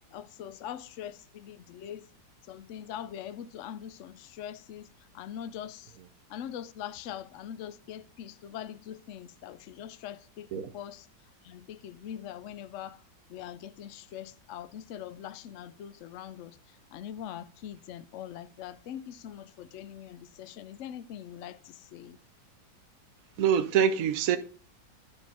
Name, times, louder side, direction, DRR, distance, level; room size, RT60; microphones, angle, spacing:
voice 1, 0.1-2.1 2.4-6.0 6.3-11.1 11.4-13.0 13.3-22.2, left 10 dB, 75° left, 0.7 m, -42 dB
voice 2, 23.4-24.4, right 8 dB, 60° right, 1.1 m, -25 dB
12.5 x 5.2 x 4.2 m
omnidirectional pair, 2.0 m